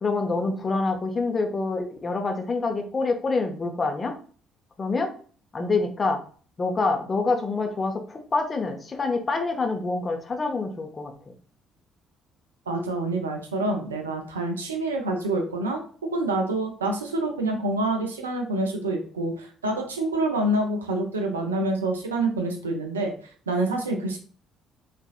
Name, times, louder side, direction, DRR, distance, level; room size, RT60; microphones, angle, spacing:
voice 1, 0.0-4.2 4.8-5.1 5.5-6.2 6.6-11.1, left 3 dB, 35° left, 4 dB, 0.7 m, -26 dB
voice 2, 12.7-15.8 16.1-23.1 23.5-24.2, right 2 dB, 80° right, 3 dB, 0.5 m, -27 dB
3.8 x 2.5 x 2.3 m, 0.43 s
figure-of-eight pair, 50°, 0 cm